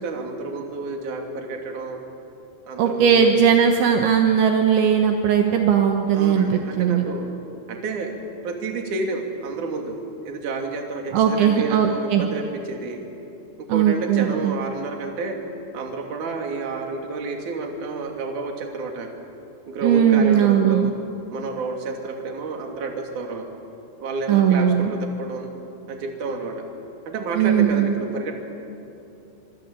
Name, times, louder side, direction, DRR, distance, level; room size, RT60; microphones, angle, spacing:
voice 1, 0.0-2.0 2.7-3.4 6.1-7.3 7.7-8.1 8.4-10.0 10.2-13.0 13.6-15.4 15.7-19.1 19.7-20.9 21.3-23.5 24.0-25.5 25.9-26.6 27.1-28.3, right 3 dB, 45° right, 2 dB, 3.8 m, -30 dB
voice 2, 2.8-7.1 11.1-12.2 13.7-14.6 19.8-20.9 24.3-24.9 27.4-27.9, right 8 dB, 70° right, 3 dB, 3.5 m, -18 dB
25.5 x 25.0 x 9.0 m, 3.0 s
omnidirectional pair, 5.8 m